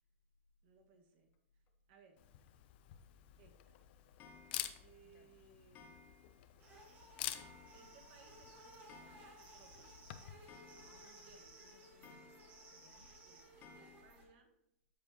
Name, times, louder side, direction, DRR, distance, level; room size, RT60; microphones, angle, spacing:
voice 1, 0.6-1.6 1.9-2.2 3.4-3.8 4.8-6.2 7.7-10.1 11.2-11.7 13.2-14.5, right 5 dB, 45° right, 3 dB, 1.7 m, -66 dB
Camera, 2.2-10.5, left 13 dB, 50° left, 0.7 m, -49 dB
Clock, 4.2-4.9 5.8-6.5 6.8-6.9 7.3-8.1 8.4-8.5 8.7-9.7 10.0-10.1 10.5-11.3 12.0-12.8 13.6-14.1, left 4 dB, 25° left, 1.1 m, -60 dB
sound 1, 6.6-14.2, right 1 dB, 25° right, 2.4 m, -58 dB
voice 2, 10.8-13.1, left 6 dB, 70° left, 8 dB, 1.0 m, -68 dB
13.0 x 4.8 x 3.0 m, 0.81 s
hypercardioid pair, 145°, 7 cm